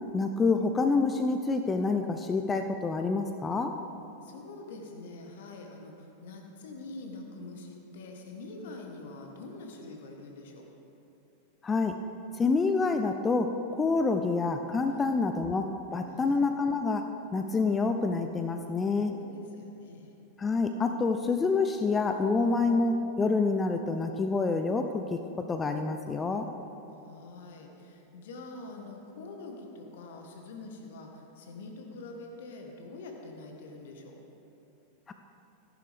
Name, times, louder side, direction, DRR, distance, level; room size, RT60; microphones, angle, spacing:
voice 1, 0.1-3.7 11.6-12.0 12.3-15.7 15.9-17.0 17.3-19.1 20.4-25.2 25.5-26.5 35.1-35.2, left 4 dB, 15° left, 6 dB, 0.5 m, -27 dB
voice 2, 4.2-10.7 14.9-15.4 16.1-16.4 19.0-20.1 26.9-34.2, left 2 dB, 55° left, 2 dB, 1.4 m, -45 dB
14.5 x 11.0 x 3.5 m, 2.8 s
figure-of-eight pair, 90°, 0 cm